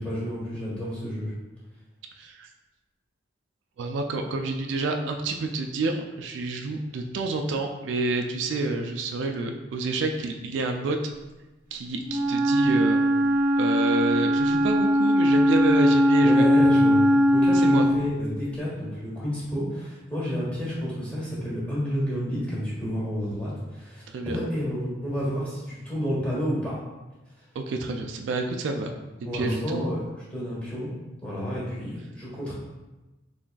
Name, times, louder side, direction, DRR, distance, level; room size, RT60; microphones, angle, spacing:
voice 1, 0.0-1.3 16.2-17.0 17.3-26.8 29.2-30.0 30.3-30.9 31.2-32.5, equal, 5° left, -8 dB, 1.2 m, -30 dB
voice 2, 2.2-2.5 3.8-11.0 11.7-13.0 13.6-16.5 17.5-17.8 24.1-24.4 27.6-28.9 29.3-29.9, right 3 dB, 70° right, 4 dB, 0.3 m, -29 dB
Wind instrument woodwind instrument, 12.0-18.1, equal, 50° right, 0.7 m, -20 dB
3.8 x 3.3 x 2.3 m, 1.1 s
head